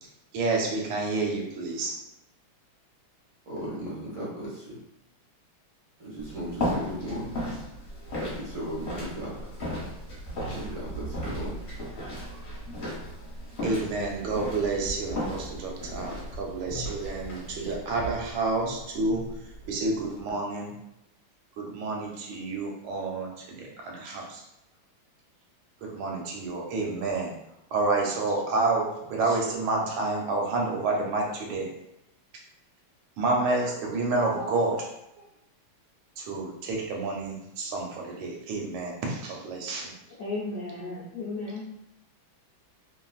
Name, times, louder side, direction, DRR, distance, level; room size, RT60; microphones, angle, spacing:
voice 1, 0.3-2.0 13.6-19.2 19.6-20.7 21.6-24.4 25.8-27.3 27.7-31.7 33.2-34.9 35.2-35.3 36.2-39.9, right 3 dB, 80° right, -1 dB, 1.5 m, -29 dB
voice 2, 3.5-4.8 6.0-7.4 8.3-9.5 10.5-11.8, equal, 55° right, -6 dB, 0.9 m, -36 dB
sound 1, 6.2-20.2, equal, 35° left, 1.2 m, -36 dB
voice 3, 40.2-41.7, left 3 dB, 70° left, -8 dB, 0.7 m, -34 dB
3.2 x 2.3 x 2.3 m, 0.86 s
omnidirectional pair, 2.2 m